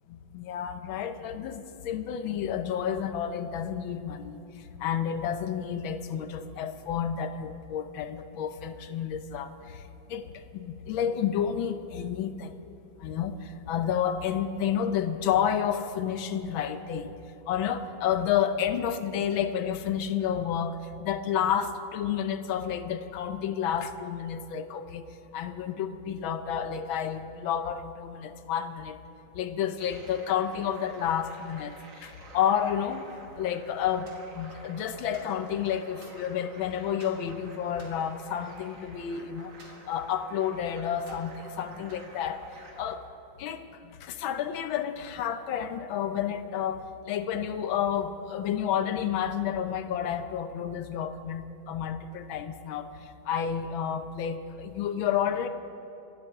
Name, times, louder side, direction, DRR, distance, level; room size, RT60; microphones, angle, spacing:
voice 1, 0.1-9.8 10.1-12.5 13.0-17.1 17.5-25.1 25.3-29.0 29.3-31.7 32.0-33.1 33.4-39.5 39.9-42.4 42.8-43.0 43.4-52.9 53.3-55.5, left 9 dB, 75° left, 9 dB, 1.5 m, -30 dB
sound 1, 29.8-43.0, right 2 dB, 45° right, 1.6 m, -50 dB
sound 2, 34.1-34.7 35.1-36.5 37.0-37.2 37.7-39.1 39.6-40.6 41.0-41.4 41.9-42.9, right 2 dB, 80° right, 3.3 m, -54 dB
25.5 x 12.5 x 3.6 m, 2.7 s
omnidirectional pair, 2.2 m